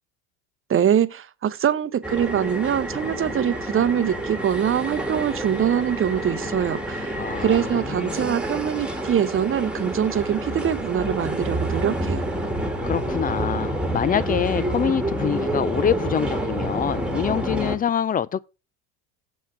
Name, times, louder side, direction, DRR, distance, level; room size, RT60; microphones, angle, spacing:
voice 1, 0.7-7.1 7.4-12.3, right 9 dB, 25° right, 0.9 m, -23 dB
sound 1, 2.0-17.8, right 1 dB, ahead, 1.8 m, -28 dB
voice 2, 7.1-8.3 12.8-18.4, left 8 dB, 20° left, 0.4 m, -25 dB
7.3 x 5.9 x 6.0 m
hypercardioid pair, 85°, 47 cm